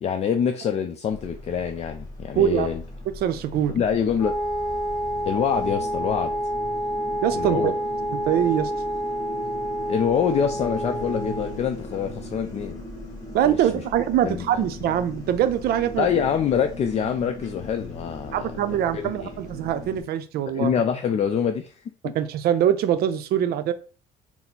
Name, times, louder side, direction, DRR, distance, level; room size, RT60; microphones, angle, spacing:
voice 1, 0.0-2.8 3.7-4.3 5.3-6.3 7.3-7.7 9.8-12.8 13.4-13.8 14.2-14.6 16.0-18.5 18.9-19.4 20.5-22.1, left 7 dB, 40° left, 6 dB, 0.4 m, -25 dB
sound 1, 1.1-20.0, left 1 dB, 20° left, 1.6 m, -39 dB
voice 2, 2.4-2.7 3.2-3.7 7.2-7.7 8.3-8.7 13.3-16.1 18.3-20.7 22.1-23.7, right 10 dB, 65° right, 11 dB, 0.5 m, -23 dB
Wind instrument woodwind instrument, 4.2-11.6, right 1 dB, 20° right, 1.1 m, -28 dB
4.1 x 2.0 x 4.2 m, 0.37 s
cardioid pair, 110°, 17 cm